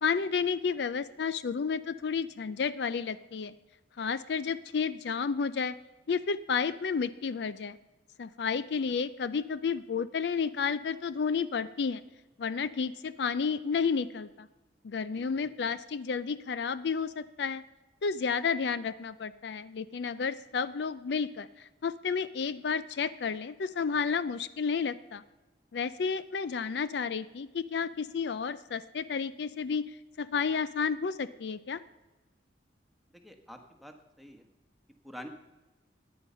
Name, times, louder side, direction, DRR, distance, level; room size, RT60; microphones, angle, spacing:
voice 1, 0.0-3.5 4.0-5.8 6.1-7.8 8.2-12.0 12.4-14.5 14.8-17.6 18.0-25.2 25.7-31.8, left 5 dB, 65° left, 15 dB, 0.4 m, -31 dB
voice 2, 15.1-15.5 33.1-34.5 35.0-35.3, equal, ahead, 5 dB, 1.3 m, -48 dB
14.5 x 9.8 x 5.5 m, 1.1 s
head